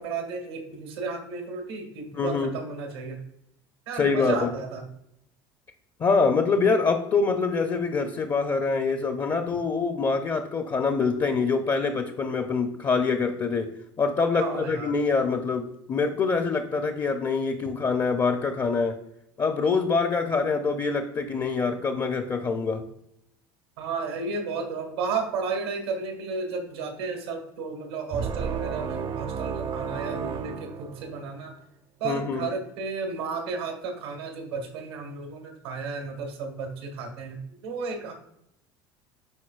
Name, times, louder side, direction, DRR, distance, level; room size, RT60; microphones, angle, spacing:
voice 1, 0.0-3.2 3.9-4.9 14.4-14.9 23.8-31.5 32.0-38.1, right 4 dB, 90° right, 2 dB, 1.6 m, -33 dB
voice 2, 2.1-2.5 4.0-4.5 6.0-13.7 14.0-19.0 19.4-22.8 32.0-32.5, left 4 dB, 35° left, 6 dB, 0.6 m, -25 dB
sound 1, 28.1-31.5, right 7 dB, 40° right, 0.6 m, -32 dB
11.0 x 4.1 x 2.4 m, 0.79 s
hypercardioid pair, 80°, 12 cm